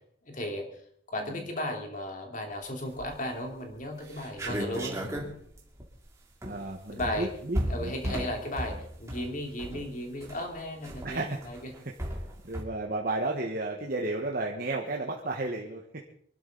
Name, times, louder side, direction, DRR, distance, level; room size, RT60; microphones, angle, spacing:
voice 1, 0.3-0.7 1.1-5.0 6.9-7.3 7.7-11.7, left 1 dB, 45° left, 2 dB, 3.1 m, -35 dB
sound 1, 2.8-3.3 3.7-3.8 4.0-12.6, equal, 15° right, 2.5 m, -36 dB
voice 2, 4.6-5.2 6.5-7.9 11.0-11.4 11.7-11.9 12.4-16.1, right 2 dB, 50° right, 0 dB, 1.4 m, -33 dB
24.0 x 12.0 x 4.0 m, 0.62 s
head